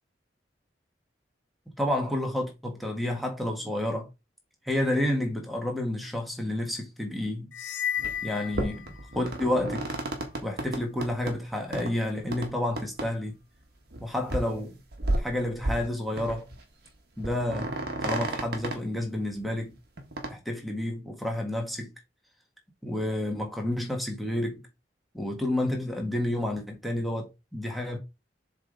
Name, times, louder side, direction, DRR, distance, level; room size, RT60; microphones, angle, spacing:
voice 1, 1.8-4.1 4.7-7.5 8.2-9.9 10.4-13.4 14.0-14.8 15.1-16.5 17.2-17.7 18.0-19.7 20.3-21.9 22.8-24.6 25.1-28.0, left 1 dB, ahead, 1.7 m, -30 dB
sound 1, 7.5-9.4, left 9 dB, 80° left, 0.5 m, -34 dB
sound 2, 8.0-8.2 8.5-11.3 11.7-11.9 12.3-12.5 12.8-13.1 13.4-13.5 13.9-14.0 14.3-14.6 14.9-15.9 16.2-16.6 16.9-17.0 17.2-18.8 20.0-20.3, right 1 dB, 60° right, 1.6 m, -32 dB
7.1 x 3.6 x 4.1 m
head